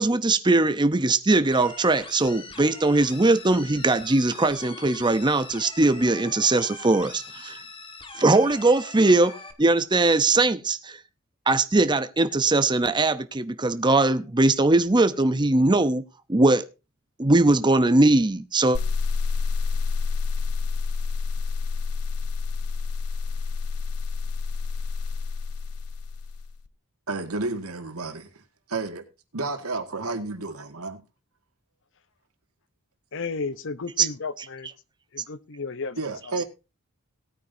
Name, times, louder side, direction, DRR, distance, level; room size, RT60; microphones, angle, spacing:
voice 1, 0.0-7.6 8.2-9.3 9.6-11.0 11.5-16.0 16.3-16.7 17.2-18.8 34.0-34.1 34.4-34.5, right 2 dB, 20° right, 0.8 m, -20 dB
sound 1, 1.5-9.5, left 3 dB, 25° left, 1.7 m, -42 dB
sound 2, 18.7-26.6, left 4 dB, 85° left, 0.6 m, -28 dB
voice 2, 27.1-28.4 28.7-29.1 29.3-31.0 36.0-36.4, right 3 dB, 80° right, 2.1 m, -31 dB
voice 3, 33.1-34.7 35.1-36.3, left 4 dB, 60° left, 0.9 m, -33 dB
18.5 x 9.2 x 2.7 m
head